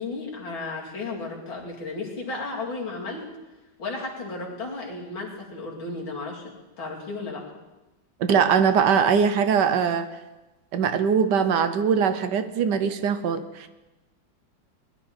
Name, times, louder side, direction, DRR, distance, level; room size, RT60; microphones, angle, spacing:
voice 1, 0.0-3.2 3.8-6.4 6.8-7.4, left 3 dB, 90° left, -3 dB, 3.4 m, -34 dB
voice 2, 8.2-10.1 10.7-13.7, right 6 dB, 70° right, 11 dB, 1.3 m, -21 dB
20.0 x 11.5 x 4.3 m, 1.1 s
omnidirectional pair, 2.1 m